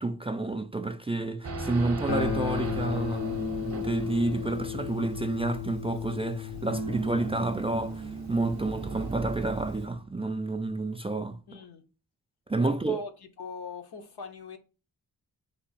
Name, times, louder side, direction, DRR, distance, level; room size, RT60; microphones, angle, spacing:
voice 1, 0.0-11.4 12.5-13.0, right 2 dB, 15° right, 0.3 m, -30 dB
Race car auto racing / Idling / Accelerating revving vroom, 1.4-10.0, right 3 dB, 40° right, 0.7 m, -39 dB
Guitar, 2.1-8.8, left 9 dB, 45° left, 0.6 m, -35 dB
sound 1, 6.7-9.9, right 5 dB, 85° right, 0.5 m, -37 dB
voice 2, 11.5-11.8 12.6-13.1 13.4-14.6, left 5 dB, 75° left, 0.8 m, -41 dB
3.3 x 3.0 x 4.1 m
cardioid pair, 50°, 39 cm